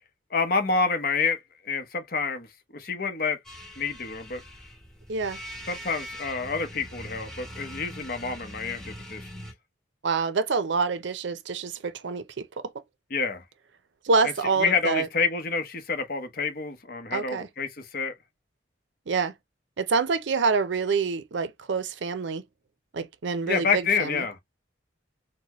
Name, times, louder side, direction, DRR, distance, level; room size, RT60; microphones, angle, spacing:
voice 1, 0.3-2.5 2.7-3.4 3.8-4.4 5.7-9.3 13.1-13.4 14.2-18.1 23.5-24.4, left 5 dB, 50° left, 0.9 m, -28 dB
sound 1, 3.4-9.5, equal, 5° left, 0.9 m, -42 dB
voice 2, 10.0-12.4 14.0-15.1 17.1-17.5 19.1-19.3 19.8-22.4 22.9-24.2, right 4 dB, 70° right, 0.5 m, -26 dB
4.1 x 2.2 x 2.9 m
head